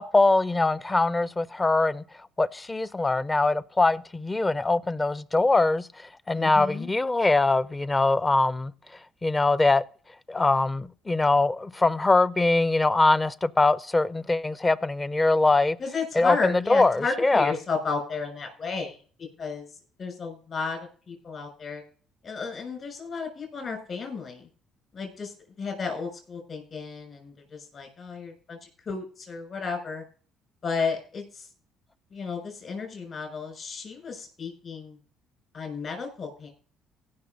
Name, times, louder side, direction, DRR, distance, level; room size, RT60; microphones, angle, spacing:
voice 1, 0.0-2.0 2.4-5.9 6.3-8.7 9.2-9.8 10.3-15.8 16.1-17.5, left 2 dB, 20° left, 0.7 m, -22 dB
voice 2, 6.3-6.9 15.8-19.6 20.0-21.8 22.2-24.5 24.9-25.3 25.6-30.0 30.6-31.5 32.1-35.0 35.5-36.5, left 4 dB, 50° left, 6.5 m, -33 dB
16.5 x 6.2 x 5.3 m
supercardioid pair, 65°, 0 cm